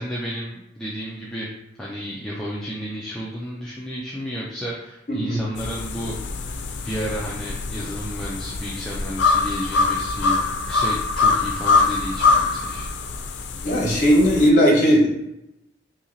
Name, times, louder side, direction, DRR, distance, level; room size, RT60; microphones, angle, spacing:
voice 1, 0.0-1.5 1.8-6.2 6.8-12.9, equal, 5° left, -6 dB, 0.4 m, -32 dB
voice 2, 5.1-5.4 13.6-15.1, equal, 45° left, -2 dB, 1.1 m, -17 dB
sound 1, 5.6-14.5, left 4 dB, 75° left, 0.4 m, -23 dB
2.9 x 2.8 x 3.8 m, 0.86 s
head